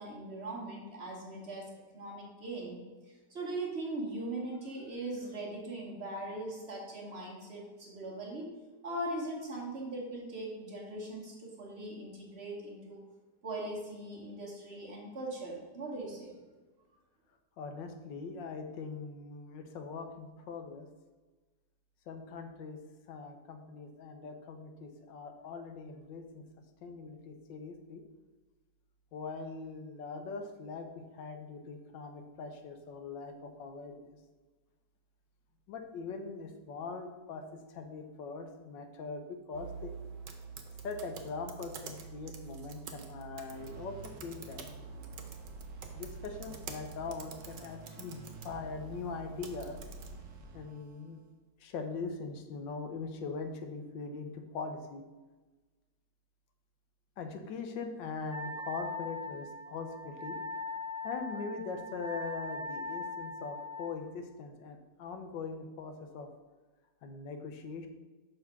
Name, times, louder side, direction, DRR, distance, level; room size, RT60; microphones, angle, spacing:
voice 1, 0.0-2.8 3.1-8.5 8.8-13.0 13.4-16.3, right 2 dB, 40° right, -3 dB, 1.3 m, -40 dB
voice 2, 17.6-20.9 22.1-22.8 23.1-26.4 26.8-28.0 29.1-34.2 35.7-39.9 40.8-44.7 45.9-49.8 50.5-51.2 51.6-55.0 57.2-60.4 61.0-66.3 67.0-67.9, left 4 dB, 85° left, 6 dB, 1.4 m, -41 dB
sound 1, 39.5-50.2, right 5 dB, 80° right, 1.4 m, -47 dB
sound 2, 43.5-51.3, right 2 dB, 55° right, 1.0 m, -52 dB
Wind instrument woodwind instrument, 58.3-63.9, left 2 dB, 20° left, 0.6 m, -40 dB
5.6 x 3.9 x 5.8 m, 1.3 s
omnidirectional pair, 1.9 m